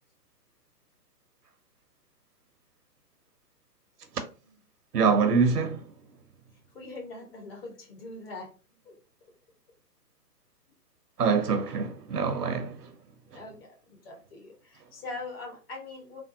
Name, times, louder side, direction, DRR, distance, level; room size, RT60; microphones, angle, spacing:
voice 1, 4.9-5.8 11.2-12.9, right 5 dB, 75° right, 0.8 m, -25 dB
voice 2, 6.7-8.5 8.8-9.0 13.3-16.2, left 3 dB, 35° left, 1.3 m, -42 dB
3.4 x 2.0 x 2.7 m
figure-of-eight pair, 130°, 48 cm